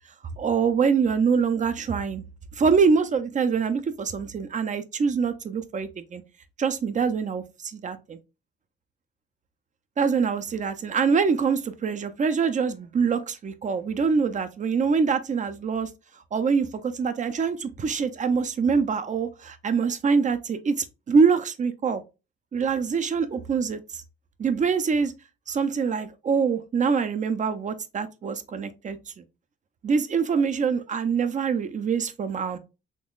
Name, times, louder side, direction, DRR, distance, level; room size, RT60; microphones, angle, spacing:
voice 1, 0.4-2.2 2.5-6.2 6.6-8.2 10.0-15.9 16.3-22.0 22.5-24.0 24.4-25.1 25.5-29.2 29.8-32.6, right 5 dB, 40° right, 0.5 m, -24 dB
3.7 x 3.0 x 2.4 m
cardioid pair, 90°, 20 cm